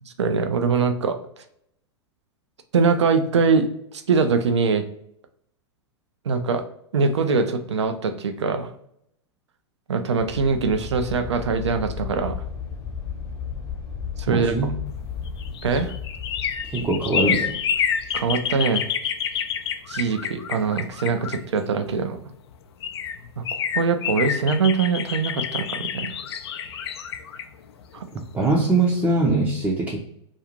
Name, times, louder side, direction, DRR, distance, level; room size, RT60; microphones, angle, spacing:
voice 1, 0.0-1.2 2.7-3.7 3.9-4.8 6.3-6.6 6.9-8.7 9.9-12.4 14.2-14.6 15.6-15.9 18.1-18.9 19.9-22.2 23.4-26.2 27.9-28.1, right 5 dB, 80° right, 7 dB, 0.4 m, -23 dB
sound 1, 10.2-18.6, left 7 dB, 25° left, 0.8 m, -35 dB
voice 2, 14.3-14.8 16.6-17.6 28.1-30.0, right 2 dB, 15° right, -2 dB, 0.5 m, -22 dB
sound 2, 15.1-21.9 22.5-22.6 22.8-28.6 28.9-29.0, left 8 dB, 65° left, 0.4 m, -28 dB
2.5 x 2.3 x 2.9 m, 0.74 s
figure-of-eight pair, 100°, 15 cm